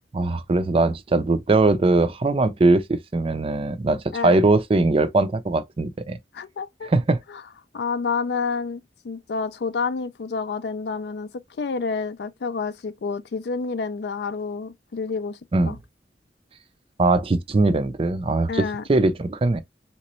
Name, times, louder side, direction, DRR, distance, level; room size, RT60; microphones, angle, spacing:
voice 1, 0.1-6.2 6.8-7.2 15.5-15.8 17.0-19.6, right 2 dB, 30° right, 0.4 m, -21 dB
voice 2, 6.3-6.9 7.3-7.4 7.7-11.3 11.6-15.4 15.6-15.8 18.5-18.8, left 4 dB, 65° left, 0.4 m, -29 dB
3.4 x 2.9 x 3.0 m
head